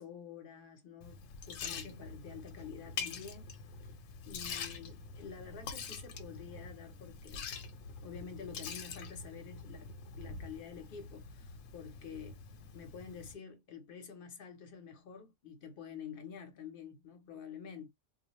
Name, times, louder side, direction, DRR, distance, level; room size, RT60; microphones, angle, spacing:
voice 1, 0.0-3.5 4.3-7.5 7.9-12.4 12.7-17.9, left 7 dB, 50° left, 0.8 m, -48 dB
Liquid, 1.0-13.3, left 5 dB, 85° left, 1.0 m, -45 dB
2.4 x 2.1 x 2.9 m
omnidirectional pair, 1.3 m